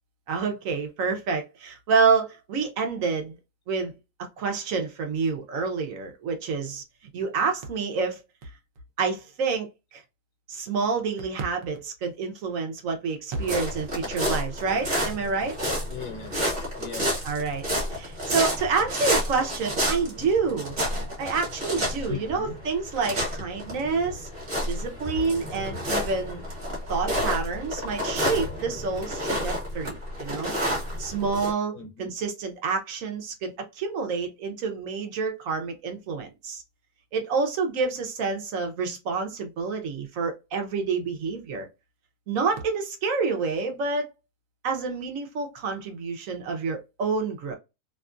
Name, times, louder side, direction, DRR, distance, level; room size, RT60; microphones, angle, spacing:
voice 1, 0.3-3.3 3.7-3.9 4.4-6.8 7.1-8.5 9.0-10.0 10.5-15.6 17.2-17.7 18.0-20.8 21.2-24.3 24.6-26.4 26.9-30.5 31.0-36.6 37.1-41.7 42.3-44.1 44.6-47.5, right 4 dB, 60° right, 1.1 m, -28 dB
sound 1, 13.4-31.5, equal, 40° right, 1.4 m, -30 dB
voice 2, 15.9-17.3 22.1-22.5 31.7-32.1, left 7 dB, 70° left, 1.0 m, -39 dB
3.0 x 2.4 x 2.4 m
omnidirectional pair, 1.7 m